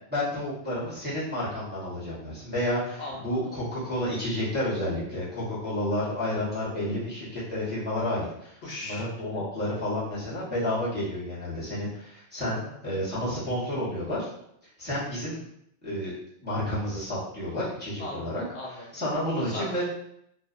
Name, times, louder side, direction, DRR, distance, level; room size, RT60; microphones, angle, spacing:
voice 1, 0.1-14.3 14.8-15.4 15.8-16.1 16.4-18.4 18.9-19.8, left 1 dB, 10° right, -10 dB, 0.6 m, -30 dB
voice 2, 3.0-3.4 8.6-9.1 9.3-9.4 12.6-13.0 18.0-19.0 19.4-19.8, left 2 dB, 70° left, -3 dB, 0.8 m, -39 dB
2.6 x 2.0 x 2.4 m, 0.75 s
omnidirectional pair, 1.3 m